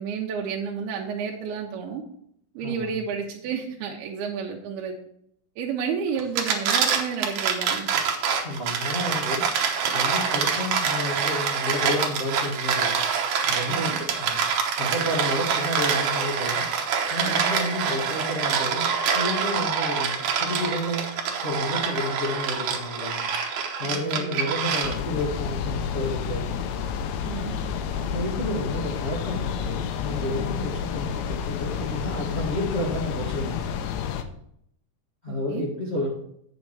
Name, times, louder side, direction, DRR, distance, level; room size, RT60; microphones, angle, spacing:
voice 1, 0.0-2.0 2.6-4.9 5.6-7.9 13.7-14.0 17.3-17.5 23.8-24.4 27.2-27.6 35.3-35.6, right 6 dB, 85° right, 0 dB, 2.7 m, -31 dB
voice 2, 2.6-2.9 8.4-9.4 9.9-12.9 13.5-14.4 14.8-16.7 17.1-21.1 21.4-23.3 23.8-26.6 28.1-33.7 35.2-36.1, left 1 dB, 65° left, -5 dB, 0.6 m, -30 dB
sound 1, 6.2-25.2, right 6 dB, 70° right, 2.0 m, -26 dB
sound 2, 24.8-34.2, left 7 dB, 80° left, 2.5 m, -30 dB
8.3 x 6.5 x 4.6 m, 0.71 s
omnidirectional pair, 4.4 m